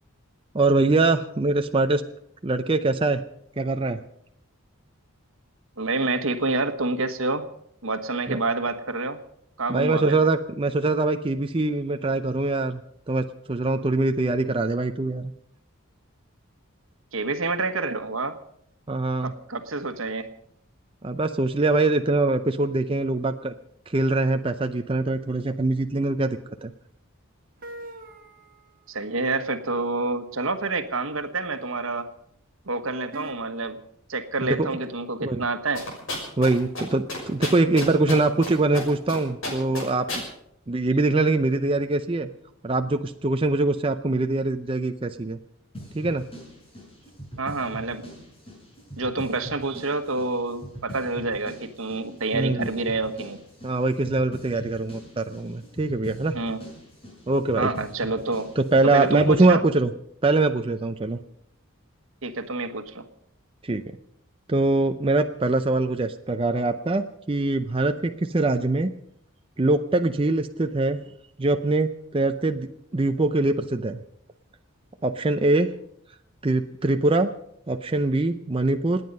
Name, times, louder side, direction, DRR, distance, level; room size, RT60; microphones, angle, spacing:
voice 1, 0.5-2.0 2.4-3.2 3.6-4.0 8.3-8.4 9.7-12.8 13.1-15.3 18.9-19.3 21.0-23.5 23.9-26.7 34.6-34.7 35.2-35.4 36.4-40.2 40.7-42.3 42.6-45.4 45.9-46.2 52.3-52.7 53.6-56.3 57.3-57.7 58.6-59.9 60.2-61.2 63.6-63.8 64.5-68.9 69.6-71.0 71.4-72.7 72.9-74.0 75.0-75.7 76.4-77.3 77.7-79.0, right 2 dB, 25° right, 7 dB, 0.5 m, -23 dB
voice 2, 5.8-7.4 7.8-9.2 9.6-10.2 17.1-18.4 19.2-20.3 28.9-32.1 32.7-33.8 34.1-35.8 47.4-48.0 49.0-53.4 56.3-56.6 57.6-58.5 58.9-59.6 62.2-63.1, right 3 dB, 70° right, 9 dB, 1.3 m, -28 dB
sound 1, 27.6-28.8 30.8-30.9 33.1-33.3, right 1 dB, 40° right, 1.8 m, -41 dB
sound 2, 35.8-36.5 36.8-36.9 37.1-38.5 38.7-39.2 39.4-40.2, left 2 dB, 70° left, 6.2 m, -31 dB
sound 3, 45.7-59.5, equal, 25° left, 5.5 m, -42 dB
28.0 x 9.5 x 5.4 m, 0.71 s
head